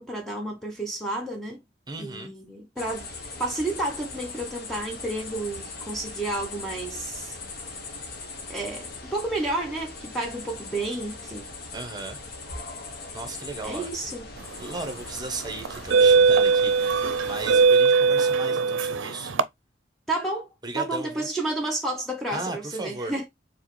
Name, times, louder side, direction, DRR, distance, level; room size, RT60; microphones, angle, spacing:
voice 1, 0.0-1.6 2.0-3.1 3.4-7.4 8.5-11.5 13.6-14.3 20.1-20.5 20.7-23.3, right 2 dB, ahead, 0.8 m, -31 dB
voice 2, 1.9-2.3 11.7-12.2 13.1-13.9 14.6-19.4 20.6-21.3 22.3-23.1, right 2 dB, 20° right, 1.1 m, -36 dB
sound 1, 2.8-17.7, left 3 dB, 55° left, 1.0 m, -40 dB
sound 2, 14.6-14.9 15.6-19.4, right 5 dB, 90° right, 0.5 m, -20 dB
4.6 x 3.0 x 3.1 m
head